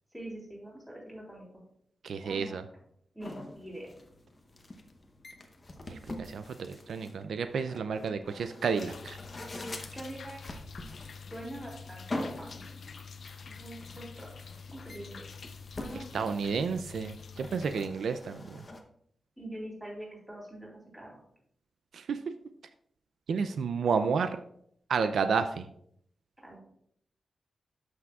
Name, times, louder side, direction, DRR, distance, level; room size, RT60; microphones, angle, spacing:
voice 1, 0.1-1.4 2.2-2.6 3.1-3.9 9.9-10.4 11.3-12.6 13.4-14.3 14.7-15.2 15.8-16.1 19.4-20.7 20.9-21.2 26.4-26.6, right 1 dB, 5° right, -3 dB, 3.1 m, -44 dB
voice 2, 2.0-2.6 5.9-9.2 16.1-18.7 21.9-22.2 23.3-24.4 24.9-25.7, right 5 dB, 75° right, 9 dB, 0.4 m, -31 dB
sound 1, 3.2-18.8, left 1 dB, 25° left, 0.8 m, -45 dB
sound 2, 8.8-17.9, left 5 dB, 55° left, 0.6 m, -47 dB
13.0 x 6.0 x 2.4 m, 0.69 s
wide cardioid pair, 165°, 0 cm